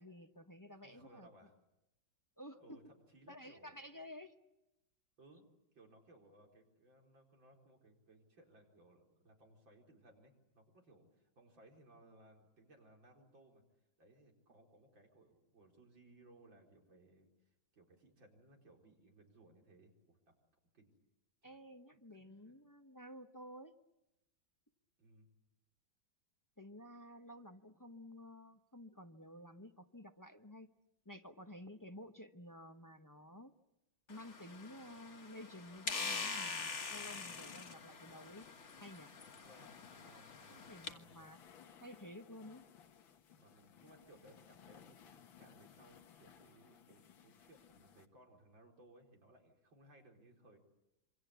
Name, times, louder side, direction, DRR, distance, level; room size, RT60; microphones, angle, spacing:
voice 1, 0.0-1.3 2.4-2.8 3.3-4.4 21.4-23.8 26.6-30.7 31.0-33.5 34.1-38.5 38.8-39.1 40.5-41.4 41.8-42.6, left 1 dB, 20° left, 6 dB, 0.5 m, -53 dB
voice 2, 0.8-1.5 2.6-3.8 5.2-5.4 5.7-13.6 14.0-17.3 17.7-20.3 20.7-20.9 21.4-21.6 22.2-22.6 25.0-25.3 39.3-41.3 43.3-50.6, right 1 dB, 70° right, 1 dB, 5.1 m, -64 dB
sound 1, 34.1-40.9, left 4 dB, 40° left, 1.7 m, -45 dB
sound 2, 36.1-48.1, left 8 dB, 75° left, 2.1 m, -61 dB
27.0 x 24.5 x 8.3 m, 0.92 s
omnidirectional pair, 2.2 m